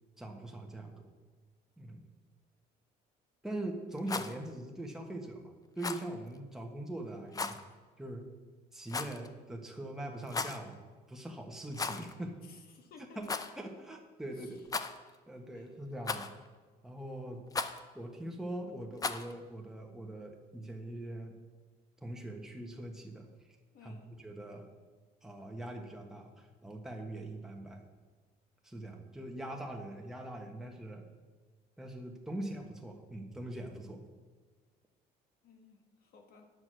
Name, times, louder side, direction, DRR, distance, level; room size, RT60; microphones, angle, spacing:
voice 1, 0.2-1.1 1.8-2.0 3.4-7.6 8.0-8.3 8.7-10.8 11.1-12.4 13.1-13.3 13.6-14.6 15.3-16.3 16.8-17.4 17.9-21.4 22.0-23.3 23.8-24.7 25.2-27.8 28.6-31.0 31.8-34.0, right 1 dB, 5° right, 1 dB, 1.4 m, -42 dB
Rattle, 3.9-4.3 5.8-6.1 7.3-7.6 8.9-9.3 10.2-10.6 11.7-12.1 12.4-12.5 13.2-13.5 14.7-15.2 16.1-16.5 17.5-17.8 19.0-19.3, left 4 dB, 20° left, 0.5 m, -36 dB
voice 2, 12.4-13.4 14.3-14.6 15.5-15.7 23.7-24.2 35.4-36.4, left 4 dB, 65° left, 4 dB, 1.5 m, -57 dB
9.7 x 6.3 x 6.3 m, 1.4 s
cardioid pair, 110°, 17 cm